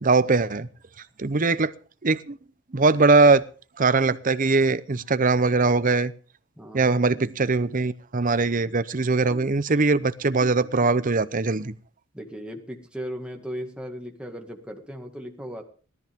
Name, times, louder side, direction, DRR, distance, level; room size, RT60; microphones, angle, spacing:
voice 1, 0.0-0.7 1.2-1.7 2.0-2.4 2.7-3.4 3.8-6.1 6.7-11.8, right 3 dB, 40° right, 0.8 m, -21 dB
voice 2, 6.6-6.9 12.1-15.6, equal, 5° right, 2.0 m, -37 dB
18.0 x 13.5 x 3.7 m
head